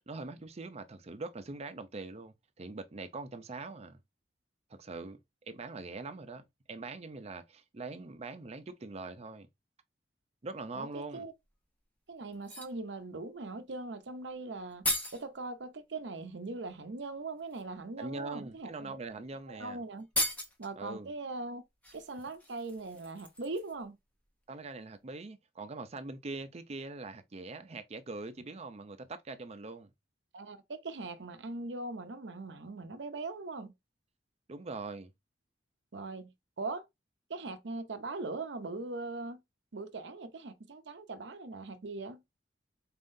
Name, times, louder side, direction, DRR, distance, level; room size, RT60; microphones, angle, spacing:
voice 1, 0.1-4.0 4.7-9.5 10.4-11.3 18.0-19.8 20.8-21.1 24.5-29.9 34.5-35.1, right 3 dB, 35° right, 0.6 m, -43 dB
voice 2, 10.7-11.3 12.1-14.8 15.1-19.0 19.5-20.1 20.6-21.6 21.9-24.0 30.3-33.7 35.9-36.8 37.3-39.4 39.7-42.2, right 3 dB, 80° right, 0.7 m, -40 dB
sound 1, 11.4-11.5 12.3-12.8 14.3-14.4 14.6-15.2 16.7-16.8 17.4-17.6 18.5-18.6 19.0-19.1 19.4-19.5 20.0-20.7 21.8-23.9 24.2-24.3, left 1 dB, 10° left, 0.8 m, -36 dB
4.3 x 3.7 x 2.6 m
head